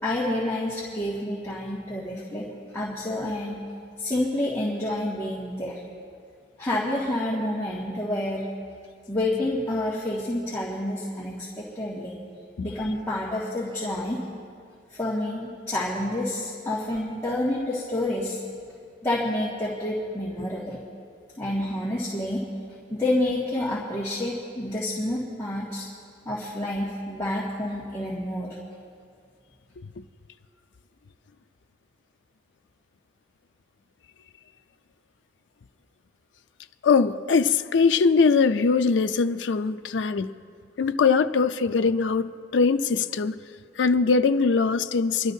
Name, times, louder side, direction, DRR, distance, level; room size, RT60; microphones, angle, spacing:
voice 1, 0.0-2.5 2.7-3.6 4.0-5.8 6.6-8.5 9.1-12.2 12.6-14.2 14.9-18.4 19.0-20.8 21.4-22.4 22.9-25.9 26.3-28.6, left 1 dB, 15° left, 1.8 m, -28 dB
voice 2, 36.8-40.3 40.8-43.4 43.8-45.3, left 5 dB, 90° left, 0.5 m, -22 dB
29.5 x 12.0 x 2.7 m
head